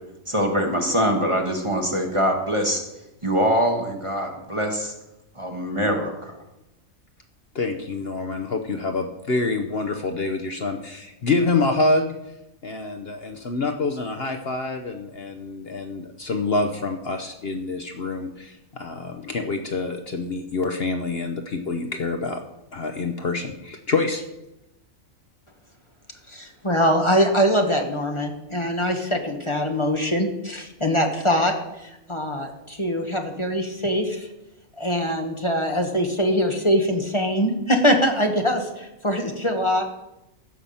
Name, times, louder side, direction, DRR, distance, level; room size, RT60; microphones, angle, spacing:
voice 1, 0.3-2.8 3.2-4.9 5.3-6.4, equal, 20° right, 2 dB, 1.4 m, -23 dB
voice 2, 7.5-12.2 12.6-22.4 22.7-24.2, left 3 dB, 50° left, 5 dB, 1.1 m, -26 dB
voice 3, 26.3-31.5 31.8-34.3 34.8-39.8, equal, 20° left, 3 dB, 1.3 m, -23 dB
15.0 x 5.8 x 7.0 m, 0.91 s
omnidirectional pair, 1.4 m